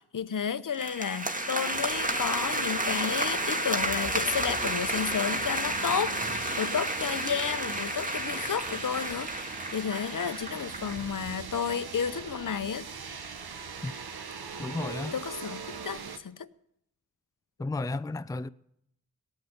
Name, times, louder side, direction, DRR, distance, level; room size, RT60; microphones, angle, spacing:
voice 1, 0.0-12.9 15.1-16.5, left 7 dB, 55° left, 0.8 m, -32 dB
sound 1, 0.7-11.1, right 1 dB, 20° right, 1.9 m, -31 dB
sound 2, 1.7-16.2, right 5 dB, 75° right, 1.3 m, -42 dB
voice 2, 14.6-15.1 17.6-18.5, left 2 dB, 10° left, 0.5 m, -33 dB
17.5 x 9.5 x 7.9 m
cardioid pair, 45°, 38 cm